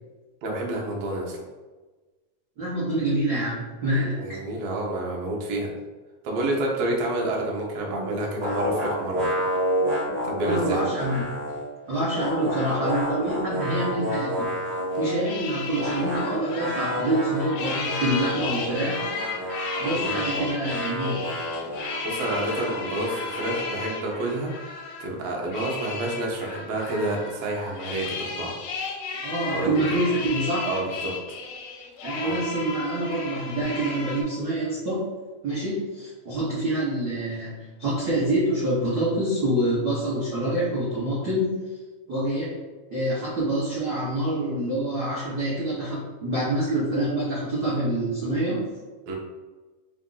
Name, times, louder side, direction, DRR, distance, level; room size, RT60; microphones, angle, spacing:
voice 1, 0.4-1.4 4.2-5.7 6.2-9.3 10.2-10.8 20.0-20.2 22.0-24.5 25.0-28.5 29.5-29.8 30.6-31.1 32.2-32.4 49.1-49.2, right 2 dB, 70° right, -1 dB, 1.6 m, -29 dB
voice 2, 2.6-4.4 10.4-11.2 11.9-14.5 15.0-19.1 19.8-21.3 29.2-30.8 32.0-35.0 35.4-41.6 42.1-42.5 42.9-48.6, right 1 dB, 85° right, -8 dB, 0.8 m, -26 dB
sound 1, 8.4-11.7 11.9-15.3 15.7-23.8, equal, 45° right, 1.2 m, -29 dB
sound 2, 14.7-34.2, left 4 dB, 80° left, 1.7 m, -34 dB
4.6 x 2.5 x 3.8 m, 1.3 s
omnidirectional pair, 3.4 m